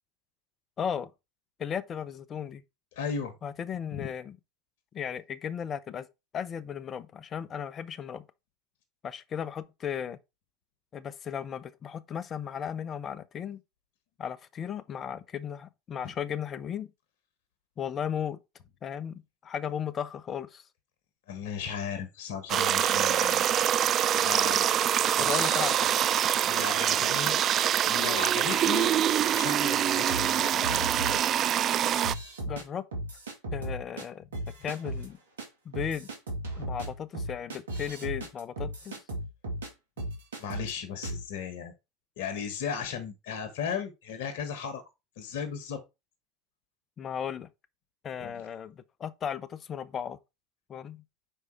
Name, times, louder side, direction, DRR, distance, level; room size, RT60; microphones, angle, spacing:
voice 1, 0.8-1.1 1.6-2.6 3.4-4.4 4.9-6.1 6.3-8.3 9.0-10.2 10.9-13.6 14.2-16.9 17.8-18.4 18.8-20.6 25.2-26.0 32.5-32.9 33.5-34.2 34.6-35.2 35.6-36.1 36.6-39.0 47.0-47.5 48.0-50.2 50.7-51.0, left 8 dB, 35° left, 0.7 m, -35 dB
voice 2, 2.9-3.3 3.9-4.1 21.3-23.5 24.2-24.7 25.2-25.7 26.4-27.4 27.9-28.9 29.3-30.9 40.4-41.7 42.2-44.8 45.2-45.8 48.2-48.4, left 7 dB, 70° left, 1.2 m, -36 dB
sound 1, 22.5-32.1, right 10 dB, 40° right, 0.3 m, -25 dB
sound 2, 30.1-31.2 31.9-32.6 32.9-34.1 34.3-35.1 35.4-35.5 35.7-39.7 40.0-40.7 41.0-41.3, right 1 dB, 80° right, 2.0 m, -36 dB
5.6 x 4.8 x 4.3 m
hypercardioid pair, 85°, 0 cm